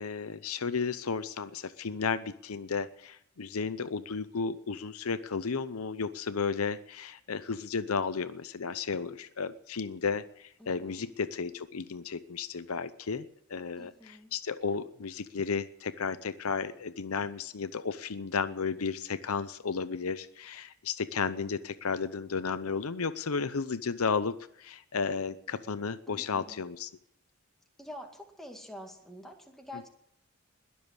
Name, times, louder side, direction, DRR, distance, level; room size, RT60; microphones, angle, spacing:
voice 1, 0.0-26.9, left 5 dB, 75° left, 13 dB, 0.7 m, -33 dB
voice 2, 10.6-11.1 13.8-14.3 26.1-26.6 27.8-29.9, left 1 dB, ahead, 2 dB, 2.1 m, -47 dB
21.0 x 7.2 x 8.1 m, 0.72 s
head